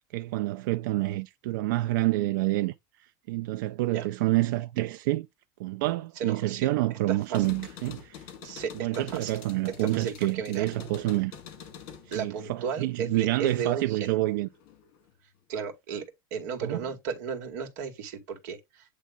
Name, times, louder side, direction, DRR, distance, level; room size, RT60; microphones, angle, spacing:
voice 1, 0.1-2.7 3.3-5.3 5.6-8.2 8.7-11.3 12.2-14.5 16.6-16.8, right 17 dB, 80° right, 0.5 m, -28 dB
voice 2, 6.2-6.7 7.1-7.4 8.4-9.4 9.8-10.6 12.1-14.2 15.5-16.0 16.3-18.8, right 6 dB, 55° right, 2.2 m, -34 dB
sound 1, 7.2-13.9 14.3-15.1, left 8 dB, 45° left, 1.6 m, -47 dB
8.4 x 3.3 x 3.8 m
supercardioid pair, 170°, 11 cm